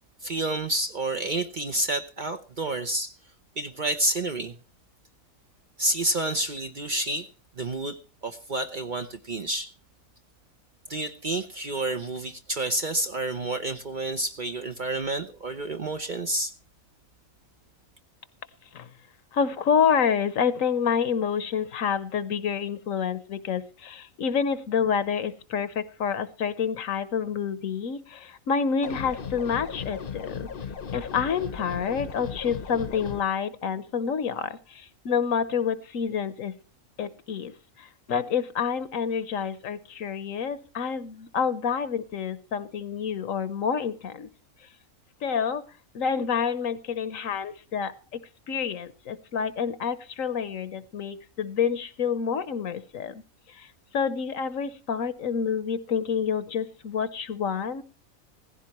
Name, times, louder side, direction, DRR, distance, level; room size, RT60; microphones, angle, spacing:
voice 1, 0.2-3.1 3.6-4.6 5.8-7.3 7.6-9.7 10.9-16.5, right 2 dB, 40° right, 0.8 m, -29 dB
voice 2, 19.3-30.5 30.9-36.6 37.0-44.3 45.2-48.2 48.5-53.2 53.5-53.7 53.9-57.8, left 7 dB, 70° left, 1.3 m, -28 dB
sound 1, 28.8-33.2, left 6 dB, 45° left, 1.0 m, -36 dB
17.5 x 15.0 x 3.0 m
omnidirectional pair, 1.5 m